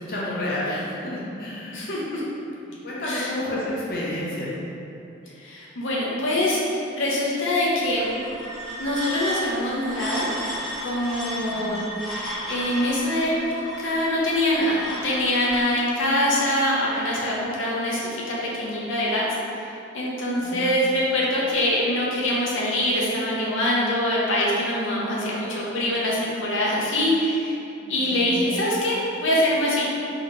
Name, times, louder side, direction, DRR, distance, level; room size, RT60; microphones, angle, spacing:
voice 1, 0.0-1.9 2.8-4.5 11.5-11.7 20.4-20.7 27.8-28.5, left 1 dB, 50° left, -7 dB, 0.8 m, -30 dB
voice 2, 1.7-2.2 3.0-3.3 5.4-8.1 8.8-10.3 10.8-11.8 12.1-19.2 19.6-27.5 27.9-29.9, left 1 dB, 80° left, -5 dB, 0.8 m, -24 dB
sound 1, 7.8-15.6, equal, ahead, 0.8 m, -34 dB
4.1 x 3.0 x 3.2 m, 2.7 s
head